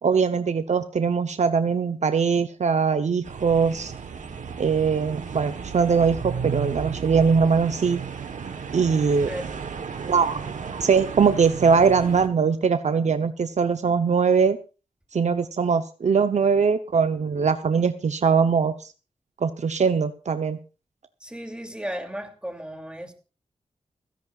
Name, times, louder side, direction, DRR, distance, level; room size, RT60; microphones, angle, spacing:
voice 1, 0.0-3.9 4.6-8.0 8.7-9.3 10.0-10.4 10.8-14.6 15.1-18.9 19.4-20.6, right 5 dB, 65° right, 0.8 m, -21 dB
sound 1, 3.2-12.3, right 6 dB, 80° right, 1.3 m, -34 dB
voice 2, 9.2-9.6 21.2-23.1, equal, 10° right, 2.8 m, -35 dB
29.5 x 10.5 x 2.4 m
wide cardioid pair, 80°, 13 cm